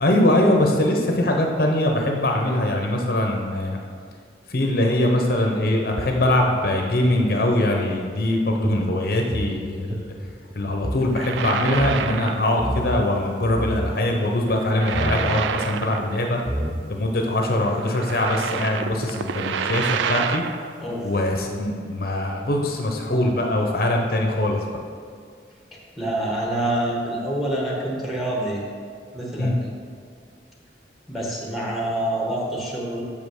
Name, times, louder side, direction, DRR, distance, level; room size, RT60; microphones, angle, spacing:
voice 1, 0.0-3.8 4.5-10.1 10.5-16.4 16.9-20.4 21.0-24.6 29.4-29.5, left 1 dB, 55° left, 1 dB, 0.8 m, -22 dB
sound 1, 8.6-11.1 11.3-11.4 11.7-12.0 12.6-13.1 13.4-14.0 14.9-15.3 16.1-16.2 16.4-17.1, right 1 dB, 15° right, 0.6 m, -28 dB
sound 2, 11.0-12.7 12.9-13.2 14.5-16.4 16.7-16.8 17.6-20.7, right 7 dB, 85° right, 0.4 m, -29 dB
voice 2, 20.8-21.1 25.7-28.6 29.1-29.5 31.1-33.0, right 1 dB, ahead, -2 dB, 1.2 m, -26 dB
6.7 x 5.4 x 6.4 m, 2.1 s
head